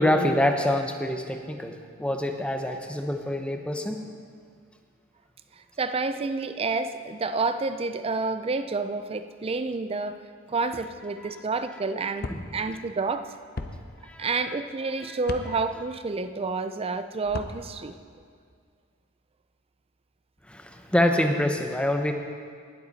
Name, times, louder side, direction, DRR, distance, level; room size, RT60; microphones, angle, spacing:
voice 1, 0.0-4.0 11.2-11.3 12.3-12.8 14.0-14.6 15.0-15.2 20.5-22.1, left 1 dB, 5° left, 4 dB, 0.8 m, -26 dB
voice 2, 5.8-10.2 10.5-13.3 14.2-18.0, right 3 dB, 30° right, 11 dB, 0.5 m, -29 dB
sound 1, 12.2-12.4 13.6-13.7 15.2-15.5 17.2-17.5, left 2 dB, 45° left, 0.7 m, -34 dB
20.0 x 8.0 x 4.1 m, 2.1 s
head